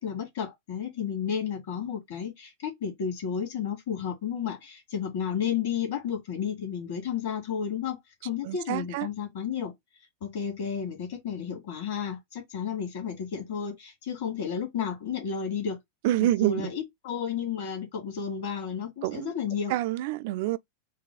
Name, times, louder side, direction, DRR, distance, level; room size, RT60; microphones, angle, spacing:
voice 1, 0.0-8.0 8.2-9.7 10.2-15.8 16.2-19.8, left 7 dB, 55° left, 2.0 m, -32 dB
voice 2, 8.4-9.1 16.0-16.7 19.0-19.3 19.7-20.6, right 15 dB, 50° right, 0.3 m, -27 dB
4.8 x 2.3 x 3.8 m
figure-of-eight pair, 90°, 0 cm